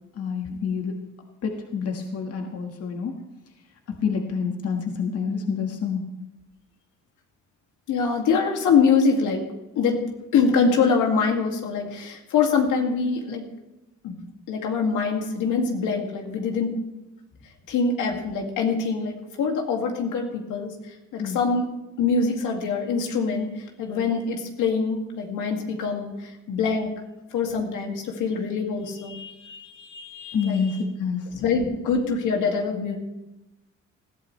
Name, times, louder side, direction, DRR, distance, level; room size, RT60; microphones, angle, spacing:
voice 1, 0.1-1.0 1.4-3.1 3.9-6.0 21.2-21.4 30.3-31.4, left 6 dB, 55° left, 3 dB, 1.7 m, -28 dB
voice 2, 7.9-9.4 9.8-10.0 10.3-13.4 14.0-14.2 14.5-16.8 17.7-21.6 22.0-26.9 27.3-30.8 31.4-33.0, left 5 dB, 85° left, 2 dB, 2.4 m, -24 dB
20.0 x 13.5 x 3.3 m, 0.97 s
cardioid pair, 90°, 30 cm